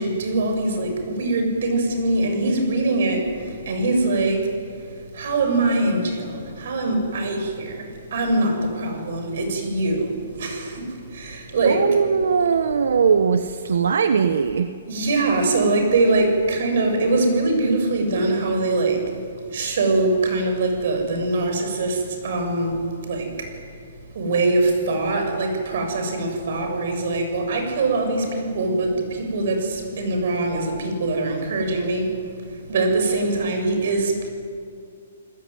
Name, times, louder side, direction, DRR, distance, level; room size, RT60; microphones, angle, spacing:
voice 1, 0.0-4.5 5.1-11.9 14.9-19.0 19.5-23.5 24.2-32.1 32.7-34.3, right 2 dB, 50° right, 4 dB, 7.0 m, -23 dB
voice 2, 11.6-14.7, right 6 dB, 75° right, 9 dB, 1.2 m, -20 dB
30.0 x 20.0 x 9.6 m, 2.3 s
hypercardioid pair, 170°, 0 cm